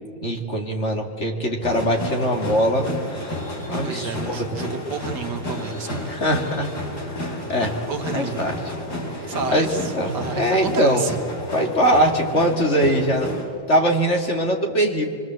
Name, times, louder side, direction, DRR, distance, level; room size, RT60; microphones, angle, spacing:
voice 1, 0.2-2.9 3.7-4.4 6.0-6.7 7.0-7.7 8.1-8.7 9.2-11.1 11.5-13.3 13.7-15.0, equal, 35° left, 2 dB, 2.7 m, -22 dB
sound 1, 1.6-13.5, left 1 dB, 55° left, 4.9 m, -31 dB
voice 2, 3.8-6.1 7.9-8.5 9.3-11.2, right 4 dB, 65° right, 6 dB, 2.1 m, -30 dB
28.5 x 23.5 x 7.7 m, 2.1 s
omnidirectional pair, 2.0 m